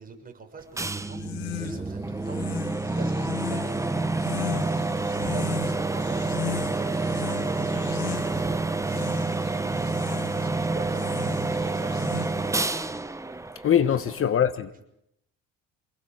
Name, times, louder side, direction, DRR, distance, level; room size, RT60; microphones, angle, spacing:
voice 1, 0.0-3.8 4.1-7.7 8.0-9.5 10.1-12.7 13.9-14.3 14.7-14.8, right 4 dB, 25° right, 6.6 m, -45 dB
sound 1, 0.8-14.3, right 3 dB, 10° right, 1.2 m, -28 dB
sound 2, 1.1-12.6, left 15 dB, 85° left, 2.0 m, -37 dB
voice 2, 13.6-14.8, left 9 dB, 40° left, 1.3 m, -23 dB
27.5 x 19.0 x 7.7 m
cardioid pair, 100°, 33 cm